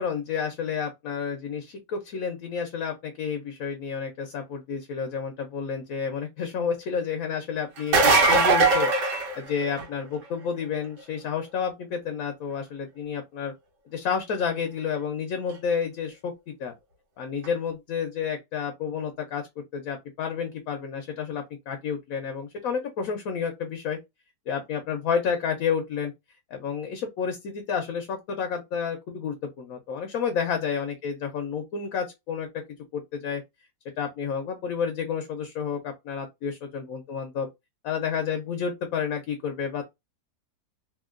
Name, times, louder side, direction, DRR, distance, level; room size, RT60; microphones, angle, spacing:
voice 1, 0.0-8.9 9.4-13.5 13.9-16.3 16.6-16.7 17.2-19.5 19.7-24.0 24.5-26.1 26.5-32.5 32.9-33.4 34.0-37.5 37.8-39.8, left 6 dB, 70° left, 0.9 m, -30 dB
sound 1, 7.8-10.0 15.5-15.6 17.4-17.5, right 3 dB, 90° right, 1.5 m, -20 dB
2.8 x 2.8 x 2.4 m
omnidirectional pair, 1.7 m